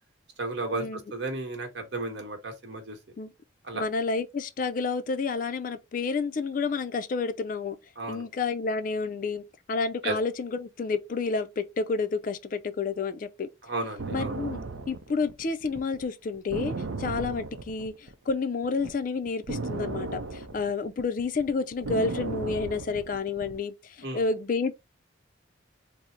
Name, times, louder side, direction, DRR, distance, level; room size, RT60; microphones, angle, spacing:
voice 1, 0.4-3.0 3.6-3.8 8.0-8.2 10.0-10.2 13.6-14.3 24.0-24.2, right 2 dB, 60° right, 1.1 m, -33 dB
voice 2, 3.7-7.8 8.1-13.5 14.1-14.6 14.9-24.7, left 4 dB, 45° left, 0.3 m, -30 dB
sound 1, 14.0-18.4 18.6-23.6, right 3 dB, 80° right, 0.5 m, -35 dB
3.7 x 2.0 x 4.1 m
head